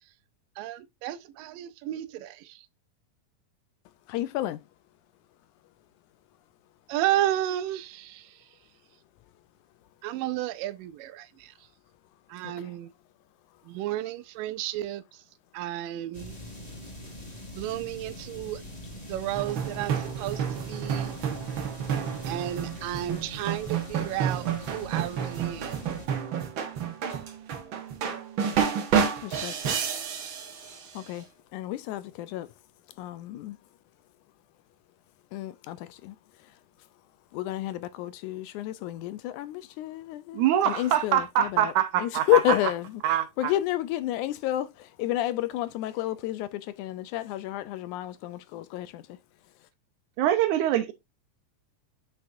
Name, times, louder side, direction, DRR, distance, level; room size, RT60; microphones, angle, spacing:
voice 1, 0.6-2.6 6.9-8.3 10.0-11.5 12.3-12.9 13.7-15.0 15.5-16.3 17.6-18.6 19.1-21.1 22.3-25.7, right 13 dB, 90° right, 2.3 m, -32 dB
voice 2, 4.1-4.6 12.6-12.7 29.2-29.8 30.9-31.3 31.5-32.5 33.0-33.6 35.3-36.2 37.3-49.0, left 14 dB, 80° left, 1.9 m, -31 dB
sound 1, 16.1-26.1, left 1 dB, 15° left, 1.9 m, -43 dB
sound 2, 19.3-31.0, right 7 dB, 60° right, 1.3 m, -30 dB
voice 3, 40.3-42.3 43.0-43.5 50.2-50.9, right 11 dB, 75° right, 2.2 m, -24 dB
7.9 x 5.8 x 2.6 m
omnidirectional pair, 3.8 m